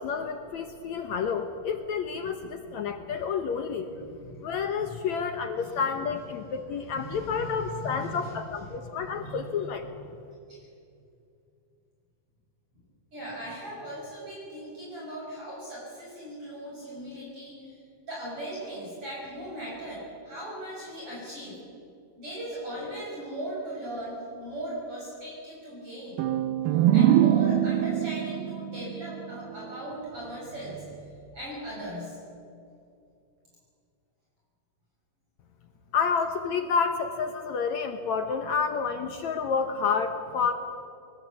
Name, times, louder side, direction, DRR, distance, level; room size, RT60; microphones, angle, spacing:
voice 1, 0.0-3.9 4.4-9.9 35.9-40.5, left 6 dB, 70° left, 6 dB, 1.8 m, -29 dB
voice 2, 4.1-4.5 4.8-4.9 5.6-5.9 6.8-8.4 8.9-10.0 13.1-17.8 18.0-21.6 22.2-26.2 26.9-31.1 31.3-32.2, right 1 dB, 35° right, -5 dB, 6.8 m, -38 dB
sound 1, 26.2-29.9, right 11 dB, 90° right, 2.7 m, -24 dB
23.0 x 20.5 x 8.3 m, 2.5 s
omnidirectional pair, 4.4 m